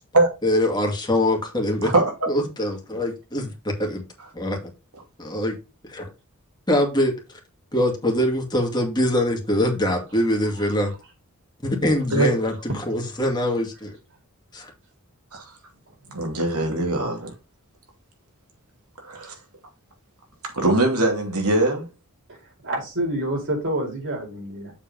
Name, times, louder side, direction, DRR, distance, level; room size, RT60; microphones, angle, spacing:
voice 1, 0.4-1.9 2.3-4.0 4.3-4.6 5.2-5.6 5.9-6.1 6.7-7.2 7.7-10.9 11.6-12.5 12.9-14.0 14.5-14.7, left 1 dB, 20° left, 2.2 m, -23 dB
voice 2, 1.8-2.1 12.1-12.3 15.3-15.5 16.1-17.3 19.0-19.3 20.5-21.9, right 2 dB, 80° right, 2.7 m, -21 dB
voice 3, 22.6-24.7, right 1 dB, 60° right, 4.6 m, -27 dB
7.3 x 4.6 x 5.2 m
head